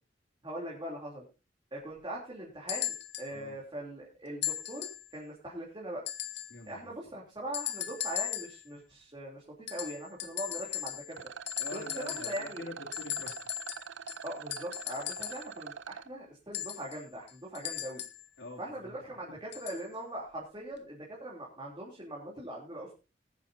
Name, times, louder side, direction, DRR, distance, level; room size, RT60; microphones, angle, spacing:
voice 1, 0.4-1.2 1.7-4.9 5.1-6.0 6.7-11.1 11.7-12.7 14.2-18.0 18.6-22.9, right 1 dB, 25° right, -4 dB, 3.1 m, -41 dB
sound 1, 2.7-3.3 4.4-5.1 6.1-6.6 7.5-8.6 9.7-11.2 11.5-12.5 12.9-15.5 16.5-18.3 19.5-19.9 20.8-20.9, left 13 dB, 65° left, 1.1 m, -38 dB
voice 2, 6.5-7.1 11.6-13.5 18.4-19.0 19.3-19.4, left 2 dB, 85° left, 3 dB, 2.6 m, -46 dB
Rattle, 11.1-16.1, right 7 dB, 85° right, 0.6 m, -45 dB
20.0 x 9.1 x 2.7 m, 0.31 s
head